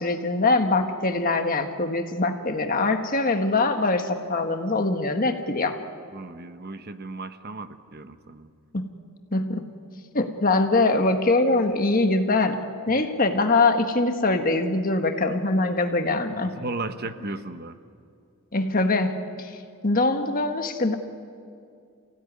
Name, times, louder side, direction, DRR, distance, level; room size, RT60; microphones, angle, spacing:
voice 1, 0.0-5.7 8.7-8.9 9.3-9.6 10.1-16.5 18.5-19.5 19.8-20.9, left 2 dB, 40° left, 5 dB, 1.5 m, -23 dB
voice 2, 6.1-8.5 12.9-13.0 16.4-17.8, right 2 dB, 45° right, 10 dB, 1.1 m, -35 dB
28.5 x 16.5 x 9.6 m, 2.4 s
head